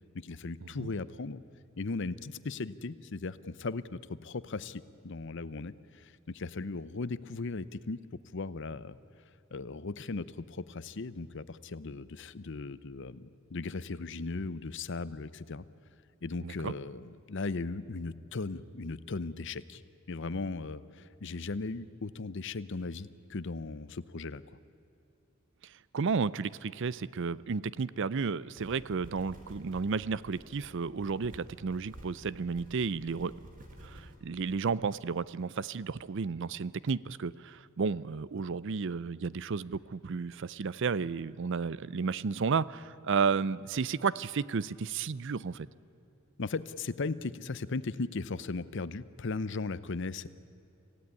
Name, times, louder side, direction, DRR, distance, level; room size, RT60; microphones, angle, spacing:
voice 1, 0.1-1.4 1.8-8.0 8.3-9.0 9.5-15.6 16.2-19.8 20.1-24.6 46.4-50.3, left 3 dB, 60° left, 16 dB, 0.7 m, -37 dB
voice 2, 16.4-16.7 25.9-33.3 33.8-45.7, right 5 dB, 60° right, 19 dB, 0.5 m, -32 dB
sound 1, 28.6-34.2, equal, 40° right, 3.4 m, -52 dB
27.0 x 16.0 x 9.6 m, 2.7 s
head